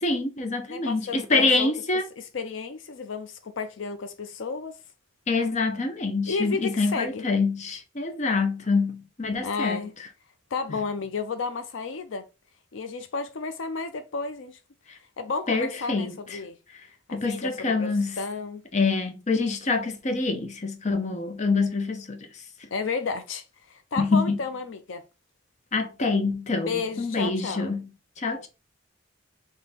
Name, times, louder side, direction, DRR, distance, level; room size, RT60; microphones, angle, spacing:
voice 1, 0.0-2.1 5.3-9.8 14.9-15.0 15.5-16.4 17.1-18.2 18.7-22.3 24.0-24.4 25.7-27.9 28.2-28.5, left 3 dB, 35° left, 0.7 m, -26 dB
voice 2, 0.7-1.7 2.2-4.8 6.3-7.2 9.4-9.9 10.5-12.3 12.7-14.6 15.2-16.6 17.1-18.6 22.7-25.0 26.7-27.7, left 4 dB, 75° left, 0.5 m, -32 dB
3.4 x 3.3 x 4.1 m
head